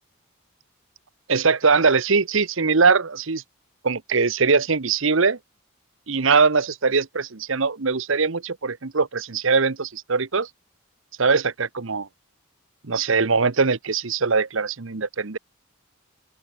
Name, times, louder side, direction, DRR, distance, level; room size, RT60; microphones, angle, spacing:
voice 1, 1.3-3.4 3.8-5.4 6.1-10.5 11.2-12.1 12.8-15.4, right 4 dB, 65° right, 1.0 m, -21 dB
open air
head